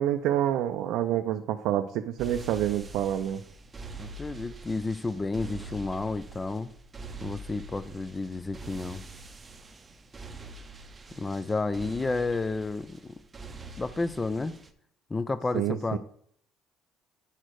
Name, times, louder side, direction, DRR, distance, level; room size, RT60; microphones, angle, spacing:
voice 1, 0.0-3.4 15.5-16.0, right 11 dB, 75° right, 6 dB, 0.5 m, -27 dB
sound 1, 2.2-14.7, right 3 dB, 20° right, 0.7 m, -45 dB
voice 2, 4.0-6.7 7.2-9.0 11.2-13.2 13.8-14.5 15.1-16.0, left 3 dB, 15° left, 14 dB, 0.4 m, -31 dB
8.8 x 4.4 x 4.7 m, 0.65 s
cardioid pair, 130°, 0 cm